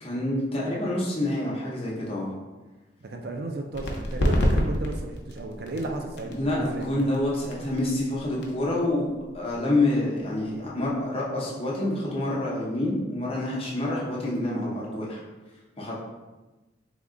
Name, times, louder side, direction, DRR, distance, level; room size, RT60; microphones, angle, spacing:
voice 1, 0.0-2.3 6.3-15.2 15.8-16.0, left 1 dB, 30° left, -5 dB, 0.8 m, -27 dB
voice 2, 3.0-6.9, right 2 dB, 55° right, 3 dB, 0.4 m, -34 dB
sound 1, 3.7-11.1, equal, 80° left, 0.6 m, -30 dB
3.5 x 2.3 x 3.7 m, 1.1 s
head